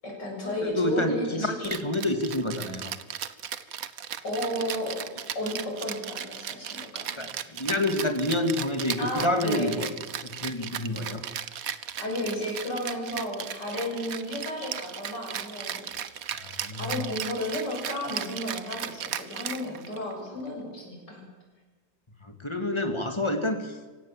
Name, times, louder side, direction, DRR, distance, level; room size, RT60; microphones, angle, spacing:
voice 1, 0.0-2.1 4.2-5.0 5.3-7.2 9.0-9.9 12.0-15.8 16.5-21.3, left 1 dB, 75° left, 0 dB, 7.8 m, -33 dB
voice 2, 0.6-2.9 7.2-9.9 10.2-11.2 16.4-16.9 22.2-23.7, left 1 dB, 15° left, 6 dB, 2.4 m, -28 dB
Rattle (instrument), 1.6-20.1, right 9 dB, 55° right, 1.3 m, -36 dB
26.0 x 17.5 x 7.6 m, 1.4 s
omnidirectional pair, 1.9 m